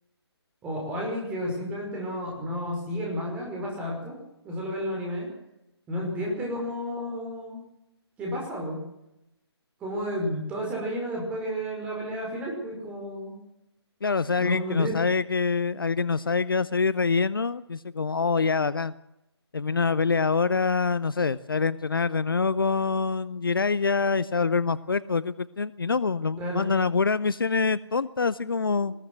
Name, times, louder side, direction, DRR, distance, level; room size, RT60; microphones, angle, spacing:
voice 1, 0.6-4.1 4.4-5.3 5.9-7.6 8.2-8.8 9.8-13.4 14.4-14.9 26.4-26.7, equal, 10° right, -1 dB, 5.4 m, -32 dB
voice 2, 14.0-18.9 19.5-28.9, left 4 dB, 55° left, 18 dB, 0.7 m, -25 dB
20.0 x 17.0 x 7.8 m, 0.88 s
figure-of-eight pair, 150°, 14 cm